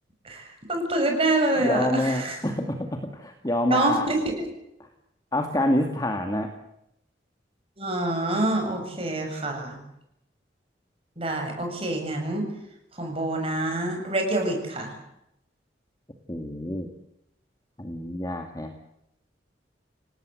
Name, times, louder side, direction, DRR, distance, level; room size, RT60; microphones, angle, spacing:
voice 1, 0.2-2.4 3.7-4.3 7.8-9.8 11.2-12.4 13.0-14.9, right 2 dB, 30° right, 3 dB, 7.8 m, -26 dB
voice 2, 1.6-2.8 3.1-4.1 5.3-6.5 16.3-16.9 17.8-18.7, left 1 dB, 20° left, 4 dB, 2.2 m, -26 dB
28.0 x 18.5 x 7.9 m, 0.80 s
head